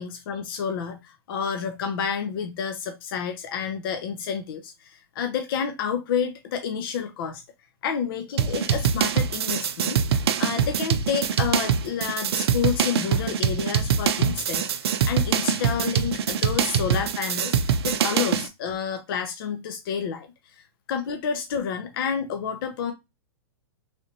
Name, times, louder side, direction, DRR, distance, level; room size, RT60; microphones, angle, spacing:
voice 1, 0.0-7.4 7.8-20.6 20.9-22.9, left 7 dB, 60° left, 0.6 m, -29 dB
sound 1, 8.4-18.5, right 7 dB, 75° right, 0.4 m, -24 dB
3.3 x 2.6 x 2.8 m
hypercardioid pair, 135°, 13 cm